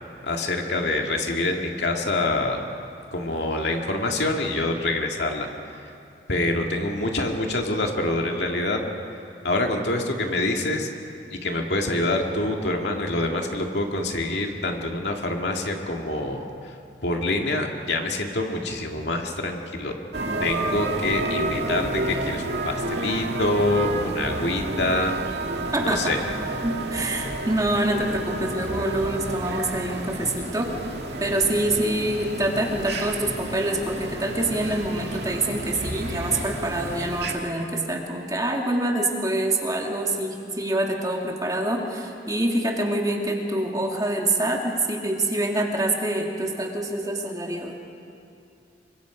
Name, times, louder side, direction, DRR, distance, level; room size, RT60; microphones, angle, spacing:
voice 1, 0.2-2.7 3.1-5.5 6.3-8.9 9.4-10.9 11.3-16.7 17.0-19.9 20.4-25.1 25.8-26.2, left 2 dB, 75° left, 2 dB, 2.2 m, -26 dB
sound 1, 20.1-37.3, right 2 dB, 70° right, 2.0 m, -30 dB
voice 2, 25.7-26.2 26.6-30.7 31.2-47.8, right 1 dB, 20° right, 1 dB, 2.2 m, -26 dB
26.5 x 24.0 x 5.1 m, 2.5 s
head